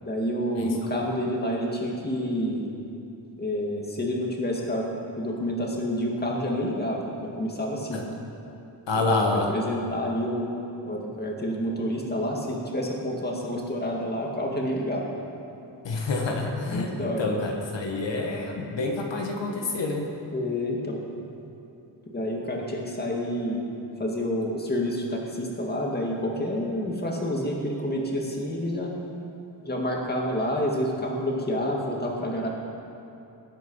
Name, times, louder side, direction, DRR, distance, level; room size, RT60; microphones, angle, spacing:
voice 1, 0.0-2.7 3.4-4.9 5.2-8.0 9.0-9.1 9.5-10.5 10.9-15.1 16.7-17.2 20.3-21.0 22.1-23.7 24.0-28.9 29.6-32.5, equal, 20° left, -2 dB, 2.1 m, -28 dB
voice 2, 8.9-9.5 15.8-20.1, left 2 dB, 75° left, 1 dB, 1.7 m, -27 dB
20.5 x 9.1 x 5.6 m, 2.7 s
wide cardioid pair, 150°, 44 cm